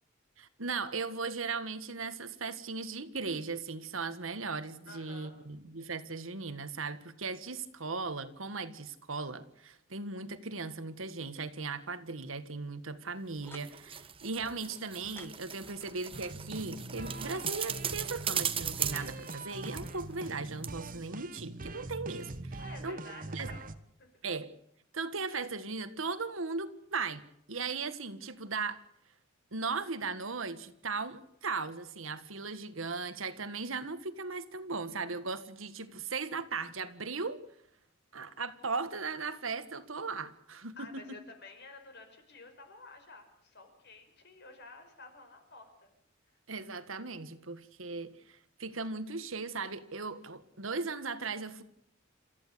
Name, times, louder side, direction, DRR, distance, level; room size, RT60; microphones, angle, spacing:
voice 1, 0.4-23.0 23.3-23.5 24.2-24.5 24.9-28.8 29.5-37.4 38.1-41.0 46.5-51.6, right 4 dB, 85° right, 11 dB, 1.6 m, -38 dB
voice 2, 4.9-5.4 22.6-23.7 24.0-24.2 40.8-45.9, left 3 dB, 55° left, 6 dB, 5.4 m, -52 dB
sound 1, 13.4-13.7 14.6-16.4 16.8-17.5 18.4-20.9, left 2 dB, 10° left, 1.3 m, -56 dB
sound 2, 13.4-20.4 20.6-20.7, right 8 dB, 25° right, 1.1 m, -38 dB
sound 3, 16.1-23.7, right 2 dB, 45° right, 1.3 m, -43 dB
28.0 x 14.5 x 8.4 m, 0.72 s
head